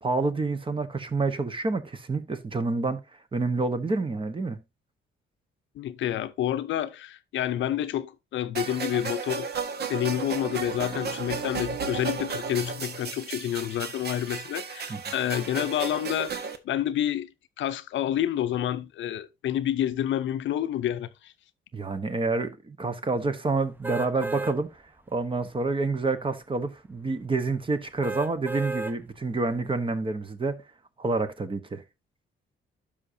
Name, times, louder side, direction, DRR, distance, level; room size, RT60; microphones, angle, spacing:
voice 1, 0.0-3.0 3.3-4.6 14.9-15.0 21.7-24.7 25.1-30.6 31.0-31.8, right 3 dB, 25° right, 1.0 m, -28 dB
voice 2, 5.8-9.5 9.9-17.3 17.6-21.3, left 11 dB, 70° left, 0.6 m, -29 dB
sound 1, 8.5-16.6, right 5 dB, 55° right, 1.1 m, -34 dB
sound 2, 23.8-24.6 25.1-25.2 28.0-29.0 29.5-29.6, right 3 dB, 10° right, 0.7 m, -33 dB
12.0 x 5.2 x 2.7 m
cardioid pair, 90°, 20 cm